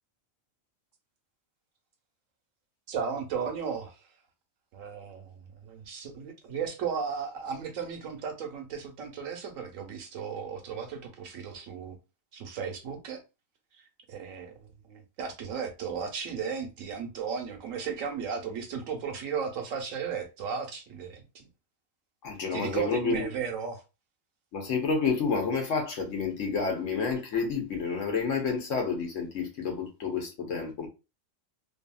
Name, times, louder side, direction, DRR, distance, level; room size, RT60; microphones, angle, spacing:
voice 1, 2.9-4.1 4.7-12.0 12.3-13.2 13.8-21.5 22.5-23.8, right 6 dB, 80° right, 1.1 m, -35 dB
voice 2, 22.2-23.2 24.5-30.9, left 5 dB, 70° left, 1.1 m, -29 dB
2.7 x 2.6 x 2.3 m
omnidirectional pair, 1.4 m